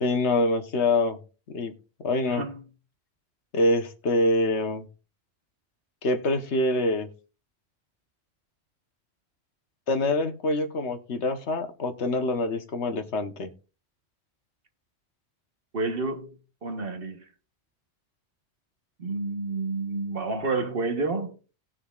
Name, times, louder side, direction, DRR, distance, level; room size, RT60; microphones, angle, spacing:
voice 1, 0.0-1.2 1.5-1.7 2.0-2.4 3.5-4.9 6.0-7.1 9.9-13.5, left 2 dB, 85° left, 1.4 m, -25 dB
voice 2, 2.3-2.6 15.7-16.4 16.6-17.2 19.0-21.4, right 3 dB, 60° right, 1.4 m, -29 dB
19.0 x 6.3 x 2.4 m
omnidirectional pair, 1.1 m